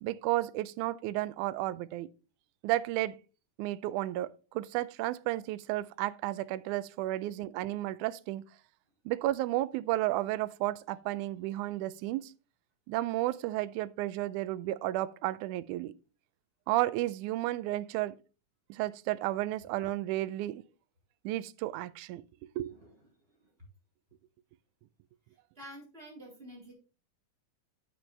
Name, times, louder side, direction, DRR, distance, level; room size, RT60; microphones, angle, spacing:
voice 1, 0.0-2.1 2.6-3.2 3.6-8.4 9.1-12.3 12.9-15.9 16.7-18.2 18.7-20.6 21.2-22.2 22.6-22.7, right 16 dB, 80° right, 1.8 m, -32 dB
voice 2, 22.6-23.1 23.4-23.5 25.6-26.7, equal, 15° right, 3.8 m, -49 dB
8.8 x 8.5 x 3.2 m
omnidirectional pair, 3.9 m